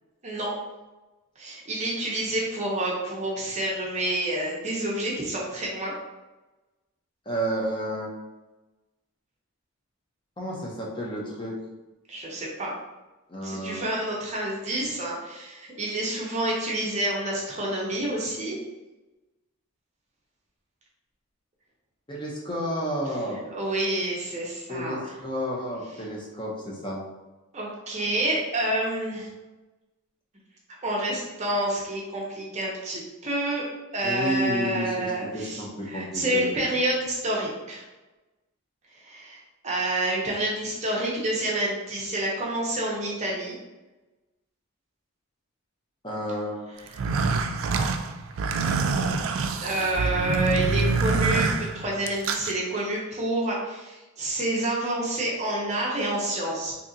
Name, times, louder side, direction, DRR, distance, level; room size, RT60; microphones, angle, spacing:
voice 1, 0.2-0.5 1.4-5.9 12.1-12.7 13.4-18.6 23.5-25.1 27.5-29.3 30.8-33.6 33.9-37.8 39.0-39.4 39.6-43.5 46.9-47.1 49.6-56.7, right 1 dB, 30° right, -4 dB, 0.7 m, -28 dB
voice 2, 7.3-8.3 10.4-11.6 13.3-13.9 22.1-23.4 24.7-27.0 34.0-35.1 35.3-36.7 46.0-46.7 48.5-48.8, equal, 20° left, -3 dB, 0.7 m, -31 dB
sound 1, 46.9-52.5, right 4 dB, 65° right, 0.3 m, -26 dB
3.8 x 2.8 x 2.7 m, 1.1 s
head